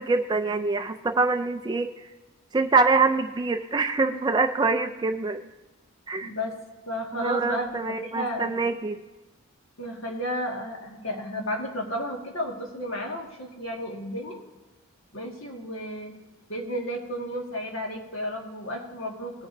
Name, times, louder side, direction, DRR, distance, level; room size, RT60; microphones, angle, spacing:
voice 1, 0.0-1.9 2.5-5.5 6.1-6.3 7.1-9.0, right 3 dB, 20° right, 8 dB, 0.3 m, -25 dB
voice 2, 6.2-6.5 6.9-8.5 9.8-14.4 15.1-16.1 16.5-19.5, equal, 60° left, 1 dB, 1.8 m, -33 dB
18.5 x 9.6 x 2.6 m, 1.1 s
head